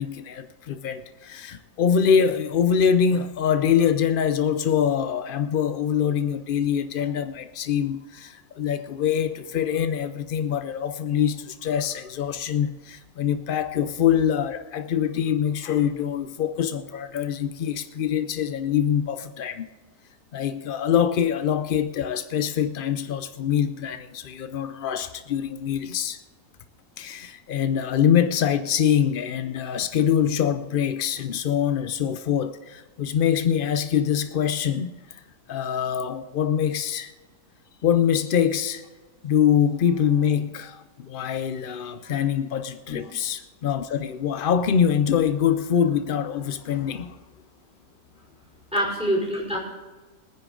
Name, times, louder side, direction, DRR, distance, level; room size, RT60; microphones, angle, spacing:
voice 1, 0.0-19.7 20.3-26.2 27.0-35.2 35.5-37.1 37.8-38.8 39.2-47.2, left 8 dB, 75° left, 0.5 m, -24 dB
voice 2, 48.7-49.6, equal, 5° right, 5.1 m, -25 dB
21.5 x 10.0 x 3.8 m
omnidirectional pair, 1.6 m